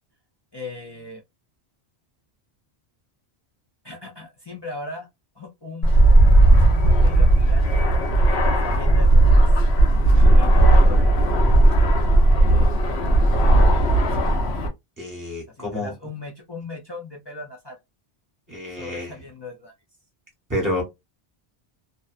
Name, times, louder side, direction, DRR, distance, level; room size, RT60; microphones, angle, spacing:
voice 1, 0.5-1.2 3.8-5.1 5.4-5.9 6.6-8.0 8.6-9.5 10.4-11.2 15.5-17.8 18.8-19.7, left 3 dB, 40° left, 0.4 m, -37 dB
Fixed-wing aircraft airplane, 5.8-14.7, right 1 dB, 90° left, 1.0 m, -16 dB
voice 2, 15.0-15.9 18.5-19.1 20.5-20.8, left 1 dB, 20° right, 1.1 m, -28 dB
2.6 x 2.2 x 2.4 m
omnidirectional pair, 1.1 m